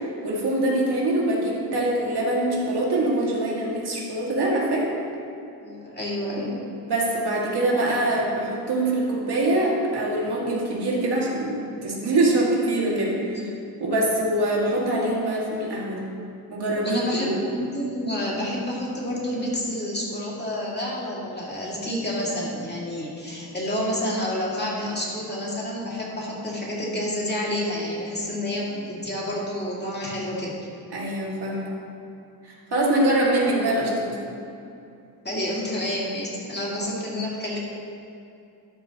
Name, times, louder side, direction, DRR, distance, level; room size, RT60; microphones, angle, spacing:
voice 1, 0.2-4.9 6.9-13.5 13.8-16.0 16.5-17.4 30.9-31.8 32.4-34.2, right 1 dB, 85° right, -4 dB, 2.2 m, -24 dB
voice 2, 5.6-6.6 13.3-13.5 16.8-30.6 35.2-37.6, left 1 dB, 25° left, -5 dB, 2.3 m, -29 dB
12.5 x 11.0 x 3.0 m, 2.6 s
wide cardioid pair, 130°, 39 cm